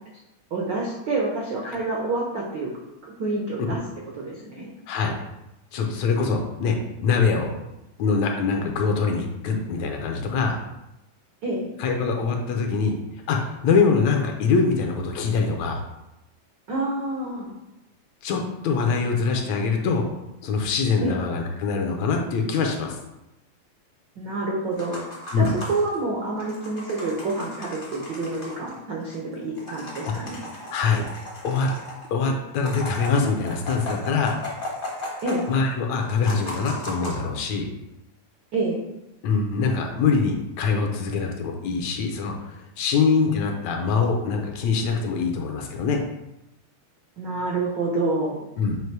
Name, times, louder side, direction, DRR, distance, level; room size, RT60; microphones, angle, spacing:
voice 1, 0.5-2.7 3.2-3.8 4.2-4.7 11.4-11.6 16.7-17.5 21.0-21.2 24.2-25.1 25.4-30.4 35.2-35.4 38.5-38.8 47.2-48.4, right 2 dB, 80° right, -2 dB, 1.0 m, -28 dB
voice 2, 5.7-6.8 7.0-7.5 8.0-10.6 11.8-13.0 13.3-15.8 18.2-20.1 20.4-23.0 25.3-25.5 30.7-31.1 31.4-31.7 32.1-34.4 35.5-37.7 39.2-46.0 48.6-48.8, left 5 dB, 75° left, 3 dB, 1.9 m, -23 dB
sound 1, 24.7-26.0 26.4-28.7 29.1-29.2 29.4-32.1 32.5-35.7 36.0-37.2, left 1 dB, 45° left, 0.6 m, -36 dB
7.9 x 2.6 x 4.6 m, 0.91 s
omnidirectional pair, 3.3 m